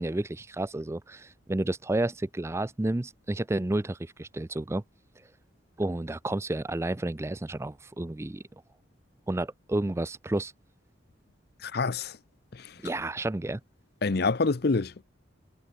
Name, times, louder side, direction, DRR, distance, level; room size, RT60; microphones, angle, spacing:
voice 1, 0.0-4.8 5.8-8.4 9.3-10.5 12.8-13.6, right 1 dB, 15° right, 0.4 m, -31 dB
voice 2, 11.6-12.2 12.5-12.7 14.0-15.0, left 3 dB, 55° left, 0.7 m, -27 dB
head